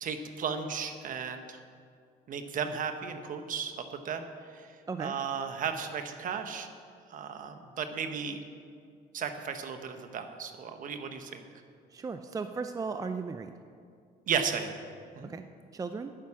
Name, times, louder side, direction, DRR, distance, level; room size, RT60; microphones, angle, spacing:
voice 1, 0.0-1.6 2.3-4.2 4.5-4.7 5.0-6.7 7.1-8.4 9.1-11.4 14.3-14.8 15.2-15.3, right 6 dB, 50° right, 7 dB, 1.2 m, -35 dB
voice 2, 11.9-13.5 15.3-15.4 15.7-16.1, right 4 dB, 20° right, 8 dB, 0.5 m, -36 dB
10.5 x 9.7 x 7.1 m, 2.2 s
cardioid pair, 110°, 17 cm